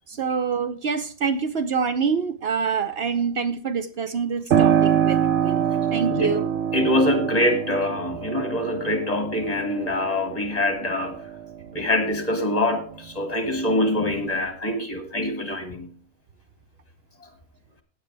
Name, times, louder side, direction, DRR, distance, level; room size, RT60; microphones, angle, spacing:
voice 1, 0.1-6.5, right 6 dB, 60° right, 1.0 m, -26 dB
Piano, 4.5-12.9 13.4-14.4, right 9 dB, 85° right, 1.1 m, -25 dB
voice 2, 6.7-11.3 11.7-15.9 17.2-17.3, left 1 dB, 35° left, 2.2 m, -24 dB
15.5 x 9.4 x 3.4 m
omnidirectional pair, 1.2 m